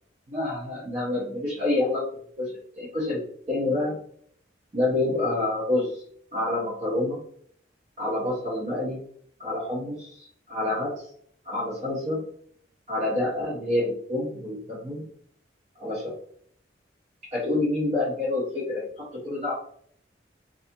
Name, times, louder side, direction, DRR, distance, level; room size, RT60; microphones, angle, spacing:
voice 1, 0.3-2.0 2.4-3.2 3.5-4.0 4.7-6.0 6.3-7.2 8.0-9.0 9.4-11.1 11.4-12.2 12.9-15.1 15.8-16.1 17.3-19.5, left 2 dB, 40° right, -6 dB, 0.6 m, -28 dB
2.4 x 2.4 x 2.7 m, 0.62 s
head